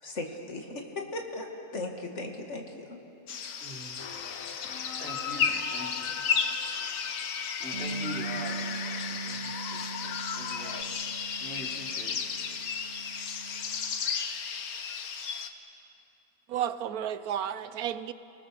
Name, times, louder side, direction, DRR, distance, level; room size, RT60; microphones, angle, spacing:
voice 1, 0.0-3.0, left 2 dB, 50° left, 2.5 m, -37 dB
sound 1, 3.3-15.5, left 6 dB, 90° left, 1.6 m, -34 dB
voice 2, 3.6-4.0 5.0-6.2 7.6-10.9 11.4-12.3, equal, 5° left, 3.4 m, -43 dB
sound 2, 4.0-10.8, left 8 dB, 70° left, 1.2 m, -39 dB
Bass guitar, 7.7-14.0, right 4 dB, 55° right, 2.3 m, -41 dB
voice 3, 16.5-18.1, right 10 dB, 85° right, 1.2 m, -32 dB
30.0 x 19.5 x 6.9 m
omnidirectional pair, 1.5 m